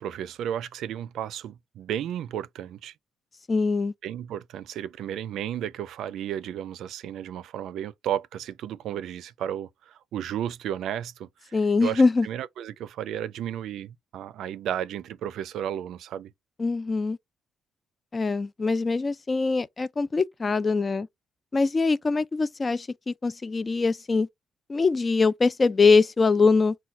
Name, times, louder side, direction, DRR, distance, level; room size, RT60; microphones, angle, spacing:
voice 1, 0.0-2.9 4.0-16.3, right 10 dB, 80° right, 0.4 m, -33 dB
voice 2, 3.5-3.9 11.5-12.3 16.6-17.2 18.1-21.1 21.5-24.3 24.7-26.8, left 4 dB, 30° left, 0.3 m, -23 dB
4.5 x 2.2 x 4.0 m
cardioid pair, 90°, 0 cm